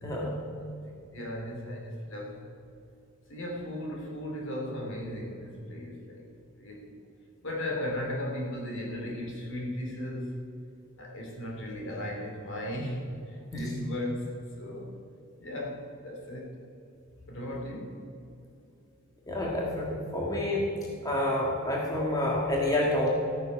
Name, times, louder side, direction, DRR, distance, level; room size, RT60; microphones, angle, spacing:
voice 1, 0.0-0.4 0.7-2.5 3.3-6.2 6.6-6.9 7.4-10.5 11.0-14.9 15.4-16.5 17.3-18.0, left 1 dB, 60° left, 0 dB, 2.6 m, -36 dB
voice 2, 19.3-20.7 21.0-23.1, left 1 dB, 15° left, -3 dB, 1.7 m, -28 dB
14.0 x 9.3 x 5.2 m, 2.7 s
head